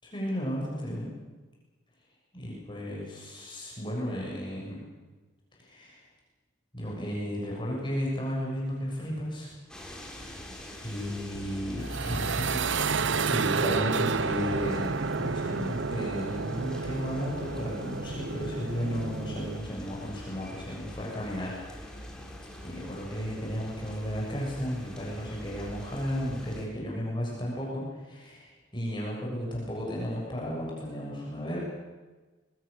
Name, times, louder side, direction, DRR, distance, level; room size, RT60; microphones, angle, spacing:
voice 1, 0.0-1.1 2.3-4.8 5.5-6.0 6.7-9.5 10.8-21.9 22.6-31.6, equal, 25° left, -4 dB, 6.8 m, -34 dB
sound 1, 9.7-26.6, equal, 5° left, 3.5 m, -44 dB
sound 2, 11.8-19.6, right 4 dB, 65° right, 0.8 m, -30 dB
25.0 x 21.5 x 6.8 m, 1.2 s
head